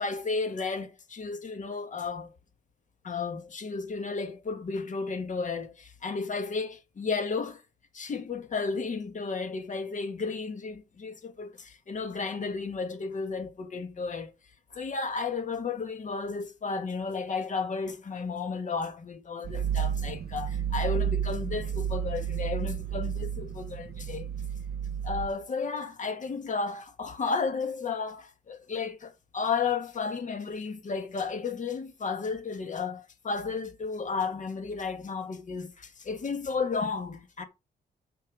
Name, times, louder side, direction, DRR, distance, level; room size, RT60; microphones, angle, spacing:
voice 1, 0.0-2.3 3.0-7.6 7.9-14.3 14.7-24.3 25.0-37.4, left 4 dB, 45° left, 1.6 m, -33 dB
sound 1, 19.4-25.3, right 9 dB, 60° right, 0.8 m, -31 dB
5.8 x 5.5 x 6.2 m
wide cardioid pair, 125°, 18 cm